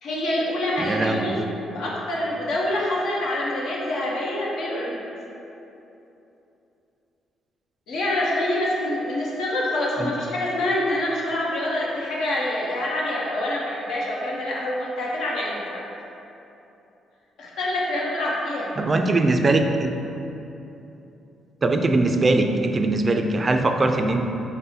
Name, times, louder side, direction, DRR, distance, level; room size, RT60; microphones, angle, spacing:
voice 1, 0.0-1.3 1.7-5.0 7.9-15.8 17.4-18.7, left 1 dB, 75° left, -5 dB, 0.9 m, -26 dB
voice 2, 0.8-1.4 10.0-10.1 18.8-20.0 21.6-24.3, right 2 dB, 30° right, 5 dB, 0.3 m, -21 dB
5.3 x 2.1 x 4.2 m, 2.9 s
cardioid pair, 85°, 0 cm